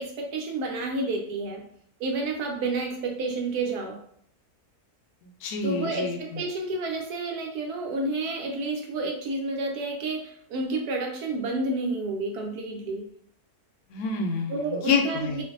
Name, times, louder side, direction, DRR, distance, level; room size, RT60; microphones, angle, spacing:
voice 1, 0.0-1.6 2.0-4.0 5.6-13.1 14.5-15.4, right 2 dB, 85° right, 2 dB, 1.2 m, -30 dB
voice 2, 5.2-6.4 13.9-15.4, left 4 dB, 75° left, 4 dB, 1.1 m, -28 dB
2.6 x 2.5 x 3.7 m, 0.64 s
omnidirectional pair, 1.6 m